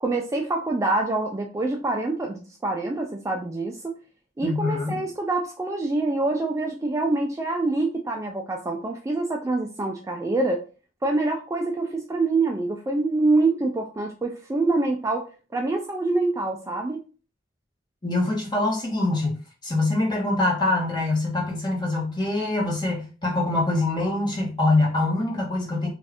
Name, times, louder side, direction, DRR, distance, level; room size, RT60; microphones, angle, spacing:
voice 1, 0.0-3.9 4.4-10.6 11.0-15.3 15.5-17.0, right 2 dB, 15° right, 1 dB, 0.3 m, -25 dB
voice 2, 4.4-4.9 18.0-25.9, left 2 dB, 25° left, -2 dB, 1.1 m, -24 dB
2.6 x 2.4 x 3.4 m, 0.35 s
head